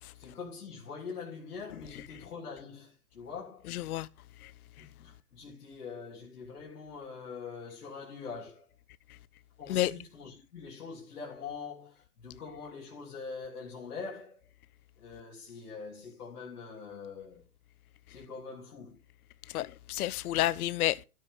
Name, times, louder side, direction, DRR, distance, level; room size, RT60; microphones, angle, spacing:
voice 1, 0.2-3.7 4.8-8.7 9.6-14.4 15.0-17.4 18.1-19.0, left 5 dB, 90° left, 3.3 m, -44 dB
voice 2, 3.7-4.1 4.4-4.5 4.8-4.9 9.1-9.2 9.7-9.9 19.5-21.0, left 14 dB, 70° left, 0.6 m, -31 dB
13.5 x 7.5 x 3.5 m
hypercardioid pair, 135°, 46 cm